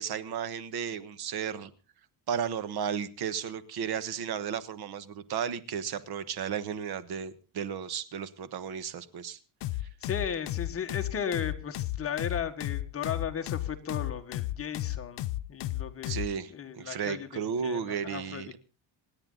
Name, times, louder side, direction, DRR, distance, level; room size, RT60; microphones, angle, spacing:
voice 1, 0.0-1.7 2.3-9.4 16.0-18.6, right 7 dB, 65° right, 14 dB, 1.3 m, -34 dB
sound 1, 9.6-16.3, left 15 dB, 85° left, 0.8 m, -33 dB
voice 2, 10.0-16.2 16.5-18.6, left 7 dB, 35° left, 6 dB, 1.6 m, -36 dB
27.5 x 9.8 x 3.9 m, 0.35 s
cardioid pair, 165°, 42 cm